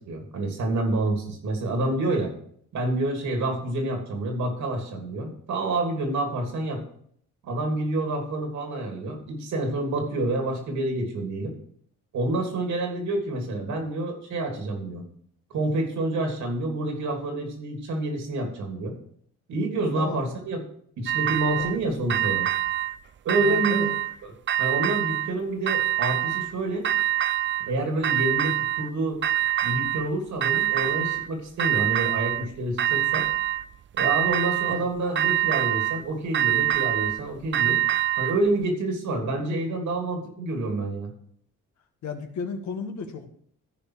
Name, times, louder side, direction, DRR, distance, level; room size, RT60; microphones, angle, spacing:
voice 1, 0.0-2.3 2.7-6.8 7.4-11.5 12.1-15.0 15.5-18.9 19.5-20.7 21.0-22.5 23.2-23.9 24.2-24.3 24.6-26.9 27.7-29.2 29.6-33.3 34.0-37.8 38.2-41.1, right 2 dB, 75° right, 2 dB, 3.0 m, -28 dB
voice 2, 19.9-20.2 21.6-21.7 23.4-24.0 34.7-34.9 42.0-43.3, left 5 dB, 70° left, 5 dB, 1.6 m, -34 dB
sound 1, 21.1-21.8 22.1-22.9 23.3-24.1 24.5-25.3 25.7-26.5 26.8-27.7 28.0-28.9 29.2-30.1 30.4-31.3 31.6-32.4 32.8-33.6 34.0-34.8 35.1-36.0 36.3-38.4, right 13 dB, 40° right, 0.5 m, -25 dB
14.5 x 5.0 x 4.8 m, 0.64 s
cardioid pair, 90°, 30 cm